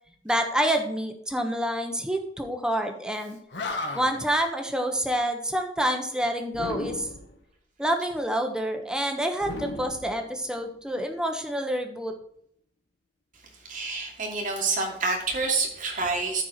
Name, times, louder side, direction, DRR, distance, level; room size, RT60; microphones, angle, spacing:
voice 1, 0.2-3.4 3.9-7.1 7.8-12.1, equal, 5° right, 4 dB, 1.1 m, -27 dB
Animal, 3.2-3.3 3.5-4.3 6.5-7.4 9.4-10.7, left 2 dB, 85° left, 1.5 m, -35 dB
voice 2, 13.7-16.4, right 3 dB, 50° right, 0 dB, 2.6 m, -27 dB
13.5 x 4.7 x 4.5 m, 0.67 s
head